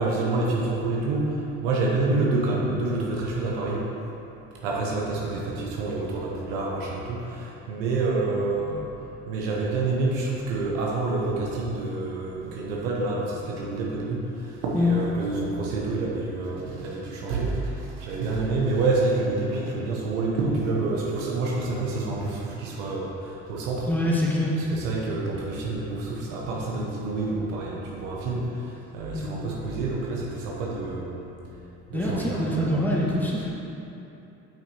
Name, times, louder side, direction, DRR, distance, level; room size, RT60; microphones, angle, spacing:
voice 1, 0.0-3.9 4.6-8.9 9.3-23.9 24.6-31.3 31.9-33.3, right 3 dB, 85° right, -3 dB, 1.0 m, -28 dB
voice 2, 23.9-24.6 29.1-29.3 31.9-33.5, left 1 dB, 5° left, -5 dB, 1.5 m, -24 dB
8.5 x 5.9 x 2.9 m, 2.9 s
hypercardioid pair, 60°, 36 cm